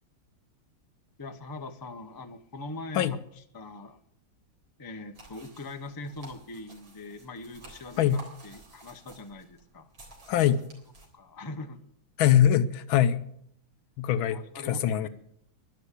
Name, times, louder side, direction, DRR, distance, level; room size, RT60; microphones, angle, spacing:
voice 1, 1.2-4.0 4.8-9.9 11.1-11.8 14.3-15.1, left 2 dB, 25° left, 7 dB, 0.5 m, -42 dB
sound 1, 5.1-11.1, right 2 dB, 75° right, 4.5 m, -52 dB
voice 2, 10.3-10.6 12.2-13.2 14.0-14.4 14.7-15.1, left 10 dB, 80° left, 12 dB, 1.6 m, -22 dB
12.0 x 11.5 x 8.3 m, 0.71 s
omnidirectional pair, 2.2 m